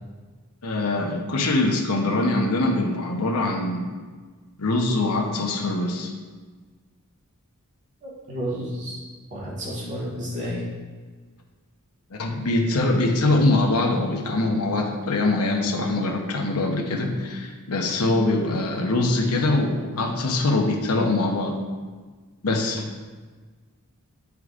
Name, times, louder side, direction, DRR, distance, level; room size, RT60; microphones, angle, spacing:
voice 1, 0.6-3.9 4.6-6.1 12.2-21.6 22.4-22.9, left 2 dB, 85° left, 1 dB, 0.9 m, -23 dB
voice 2, 8.0-9.0 9.3-10.6, equal, 35° right, -7 dB, 1.6 m, -31 dB
9.5 x 4.6 x 2.5 m, 1.4 s
head